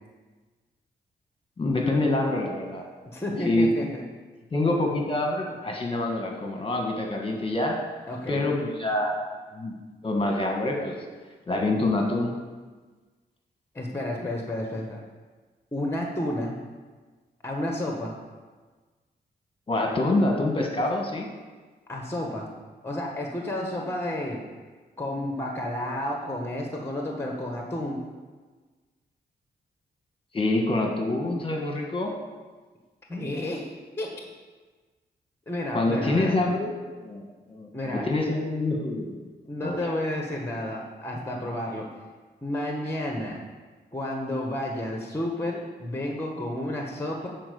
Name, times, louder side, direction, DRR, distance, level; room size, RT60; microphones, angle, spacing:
voice 1, 1.6-2.8 3.5-3.7 4.5-7.8 8.3-9.1 9.5-9.7 10.0-11.0 11.5-12.3 19.7-21.3 30.3-32.1 35.7-36.7 37.0-37.2 37.5-39.2 39.6-39.8, left 2 dB, 30° left, 1 dB, 1.6 m, -26 dB
voice 2, 3.0-4.0 8.1-8.5 13.7-15.0 15.7-16.5 17.4-18.1 21.9-22.5 22.8-24.5 25.0-28.1 33.1-34.3 35.5-36.4 37.7-38.1 39.5-41.9 42.4-43.4 43.9-47.3, left 1 dB, 15° left, 1 dB, 1.4 m, -31 dB
10.0 x 4.6 x 6.9 m, 1.3 s
cardioid pair, 95°, 18 cm